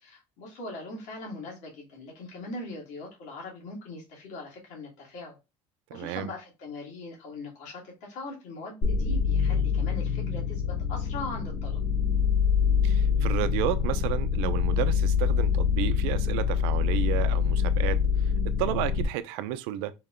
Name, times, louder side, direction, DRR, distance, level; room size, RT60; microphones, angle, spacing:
voice 1, 0.0-5.4 5.9-11.8, left 2 dB, 75° left, 1.8 m, -40 dB
voice 2, 5.9-6.3 12.8-18.3 18.6-19.9, right 13 dB, 85° right, 0.4 m, -32 dB
sound 1, 8.8-19.1, left 6 dB, 60° left, 1.4 m, -25 dB
4.6 x 2.1 x 3.5 m
supercardioid pair, 105°, 12 cm